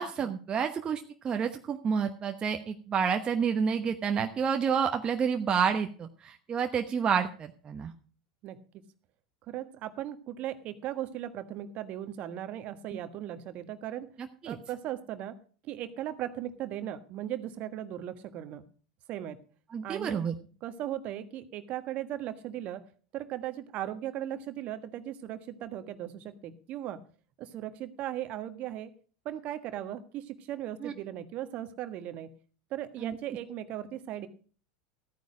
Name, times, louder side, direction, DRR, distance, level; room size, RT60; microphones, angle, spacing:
voice 1, 0.0-7.9 14.4-14.6 19.7-20.3 30.8-30.9 33.0-33.1, right 6 dB, 30° right, 5 dB, 1.0 m, -29 dB
voice 2, 8.4-8.8 9.5-14.1 14.4-15.3 15.6-18.6 19.1-19.4 19.8-20.2 20.6-22.8 23.1-27.0 27.4-28.9 29.2-32.3 32.7-34.3, right 12 dB, 50° right, 10 dB, 1.4 m, -37 dB
13.5 x 9.4 x 5.1 m, 0.41 s
hypercardioid pair, 90°, 3 cm